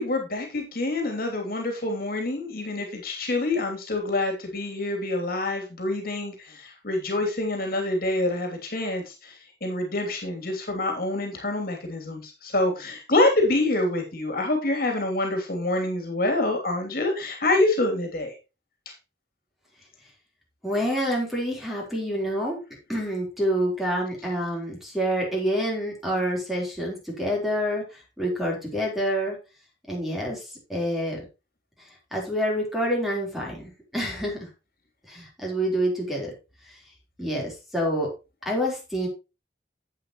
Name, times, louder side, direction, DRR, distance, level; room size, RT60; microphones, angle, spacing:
voice 1, 0.0-18.3 18.8-18.9, left 2 dB, 55° left, 3 dB, 3.1 m, -26 dB
voice 2, 20.6-22.6 22.9-27.8 28.2-29.4 29.9-30.4 30.7-31.2 32.1-34.5 35.1-36.3 37.2-38.1 38.5-39.1, equal, ahead, -2 dB, 4.0 m, -27 dB
11.5 x 8.3 x 3.1 m, 0.28 s
head